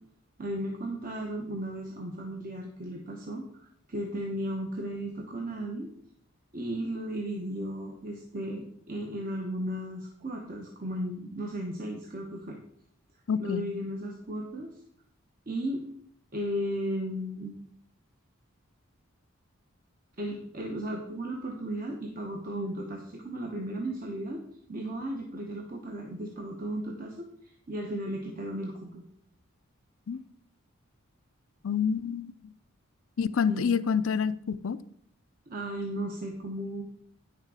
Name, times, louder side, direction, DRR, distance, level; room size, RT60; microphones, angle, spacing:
voice 1, 0.4-5.9 6.5-12.6 13.4-14.7 15.5-15.8 16.3-17.6 20.2-24.4 24.7-29.1 33.5-33.7 35.5-36.8, right 1 dB, 40° right, 1 dB, 1.0 m, -35 dB
voice 2, 13.3-13.7 30.1-30.2 31.6-32.3 33.2-34.8, left 6 dB, 70° left, 15 dB, 0.5 m, -27 dB
9.2 x 6.5 x 4.8 m, 0.68 s
head